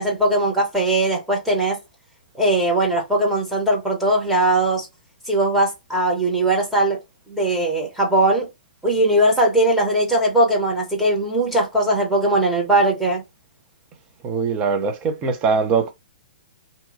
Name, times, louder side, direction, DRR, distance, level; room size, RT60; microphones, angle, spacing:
voice 1, 0.0-1.8 2.4-4.9 5.3-7.0 7.3-8.5 8.8-13.2, right 1 dB, 5° right, 1.0 m, -19 dB
voice 2, 14.2-15.9, right 5 dB, 25° right, 0.6 m, -21 dB
2.7 x 2.2 x 2.5 m
figure-of-eight pair, 115°, 5 cm